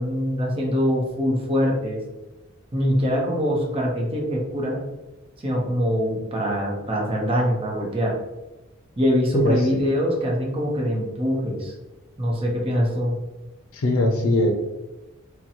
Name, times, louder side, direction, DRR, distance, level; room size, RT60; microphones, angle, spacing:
voice 1, 0.0-2.0 2.7-4.8 5.4-8.2 9.0-11.7 12.2-13.1, equal, 30° right, -2 dB, 0.7 m, -23 dB
voice 2, 9.3-9.7 13.7-14.5, left 1 dB, 80° left, 3 dB, 0.5 m, -20 dB
4.0 x 2.2 x 2.9 m, 1.0 s
head